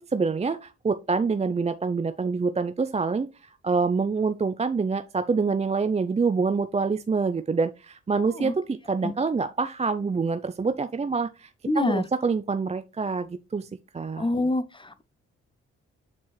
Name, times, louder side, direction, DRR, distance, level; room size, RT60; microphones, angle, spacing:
voice 1, 0.1-3.3 3.6-11.5 11.7-13.7 13.9-14.3, right 4 dB, 20° right, 0.5 m, -26 dB
voice 2, 11.7-12.0 14.2-15.0, left 2 dB, 15° left, 0.7 m, -26 dB
7.5 x 4.2 x 3.1 m
hypercardioid pair, 40°, 31 cm